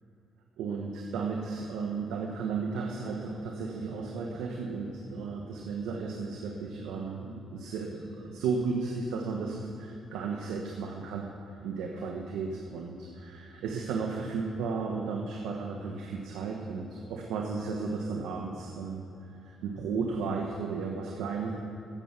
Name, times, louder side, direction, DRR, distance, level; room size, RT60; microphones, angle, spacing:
voice 1, 0.6-11.3 11.6-19.0 19.4-21.5, right 4 dB, 90° right, 0 dB, 1.3 m, -34 dB
14.5 x 9.3 x 6.1 m, 2.9 s
cardioid pair, 90°, 0 cm